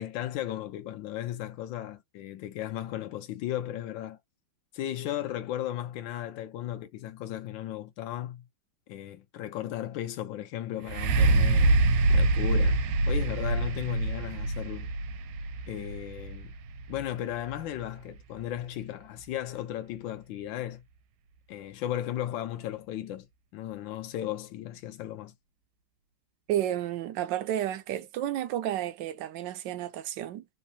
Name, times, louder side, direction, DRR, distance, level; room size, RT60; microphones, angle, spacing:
voice 1, 0.0-4.2 4.7-8.4 8.9-11.8 12.1-12.8 13.1-14.9 15.7-16.5 16.9-20.8 21.5-23.3 23.5-25.3, left 12 dB, 75° left, 1.3 m, -35 dB
sound 1, 10.8-18.6 19.2-19.3, right 2 dB, 90° right, 1.4 m, -26 dB
voice 2, 26.5-30.5, right 12 dB, 75° right, 1.2 m, -31 dB
3.7 x 2.6 x 2.6 m
omnidirectional pair, 2.2 m